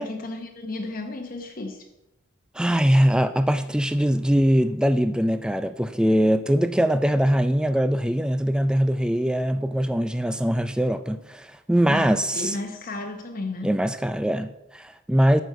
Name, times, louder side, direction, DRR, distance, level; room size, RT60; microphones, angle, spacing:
voice 1, 0.0-1.9 11.9-13.7, left 2 dB, 45° left, 0.9 m, -33 dB
voice 2, 2.6-12.6 13.6-15.4, equal, 5° right, 0.3 m, -22 dB
9.1 x 6.3 x 6.6 m
head